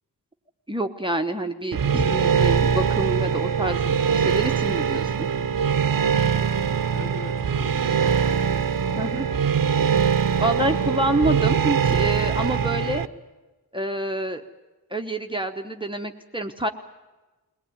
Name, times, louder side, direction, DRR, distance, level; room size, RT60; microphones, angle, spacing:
voice 1, 0.7-3.8 4.1-5.3 9.0-9.3 10.4-13.0 13.7-14.4 14.9-16.7, right 1 dB, 15° right, 4 dB, 1.0 m, -27 dB
sound 1, 1.7-13.1, right 7 dB, 60° right, 0.9 m, -22 dB
voice 2, 6.6-9.4 10.2-10.8, left 2 dB, 55° left, 3 dB, 3.3 m, -41 dB
21.5 x 18.5 x 9.4 m, 1.2 s
wide cardioid pair, 125°, 37 cm